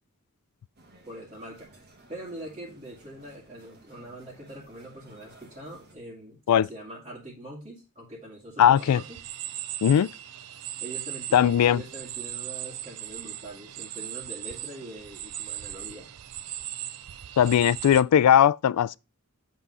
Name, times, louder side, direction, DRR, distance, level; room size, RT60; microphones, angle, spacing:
sound 1, 0.8-6.0, right 2 dB, 45° right, 1.6 m, -55 dB
voice 1, 1.1-9.2 10.8-16.1, right 1 dB, 25° right, 2.1 m, -43 dB
voice 2, 8.6-9.0 9.8-10.1 11.3-11.8 17.4-19.0, left 9 dB, 85° left, 0.3 m, -19 dB
sound 2, 8.8-18.0, right 12 dB, 90° right, 0.5 m, -38 dB
8.2 x 3.8 x 5.4 m
head